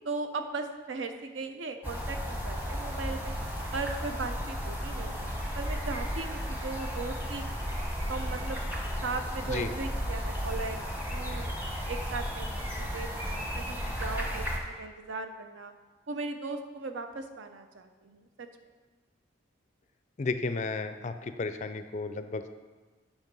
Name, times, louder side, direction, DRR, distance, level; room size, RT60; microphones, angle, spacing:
voice 1, 0.0-3.3 3.7-7.7 8.1-8.6 9.0-10.8 11.1-11.5 11.9-15.7 16.1-18.5, right 3 dB, 70° right, 7 dB, 0.7 m, -38 dB
sound 1, 1.8-14.6, equal, 10° right, 0.9 m, -34 dB
voice 2, 20.2-22.5, left 3 dB, 35° left, 10 dB, 0.4 m, -33 dB
8.0 x 5.2 x 5.3 m, 1.4 s
head